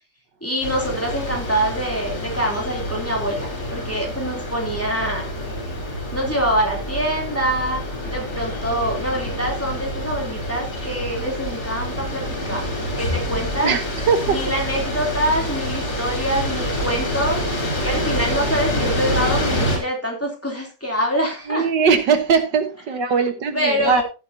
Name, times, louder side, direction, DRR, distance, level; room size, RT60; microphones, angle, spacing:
voice 1, 0.4-5.3 6.1-12.7 13.0-13.8 14.3-17.4 17.8-21.7 23.5-24.0, equal, 5° left, 3.0 m, -25 dB
sound 1, 0.6-19.8, equal, 60° left, 4.2 m, -27 dB
voice 2, 13.6-14.4 21.5-24.0, right 5 dB, 80° right, 1.9 m, -20 dB
15.0 x 8.0 x 2.8 m
omnidirectional pair, 1.9 m